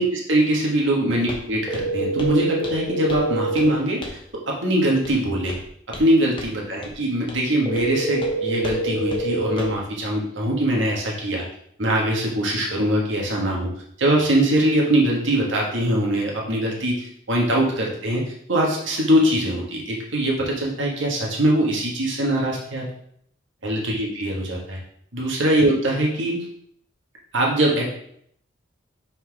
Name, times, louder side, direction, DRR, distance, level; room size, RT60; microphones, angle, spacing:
voice 1, 0.0-5.6 5.9-11.4 11.8-13.7 14.0-18.2 18.5-22.8 23.6-24.8 25.1-26.4 27.3-27.9, right 1 dB, 75° right, -2 dB, 1.7 m, -22 dB
Walk footsteps, 1.3-1.5 1.7-2.4 2.6-3.3 3.6-3.7 4.0-4.3 5.0-5.2 5.5-6.1 6.4-6.5 6.8-6.9 7.3-7.4 7.8-7.9 8.2-8.3 8.6-8.8 9.1-9.2 9.6-9.8, left 1 dB, 25° left, 1.0 m, -36 dB
sound 1, 1.7-3.7 7.7-9.7, right 2 dB, ahead, 1.4 m, -26 dB
5.8 x 4.5 x 4.8 m, 0.67 s
head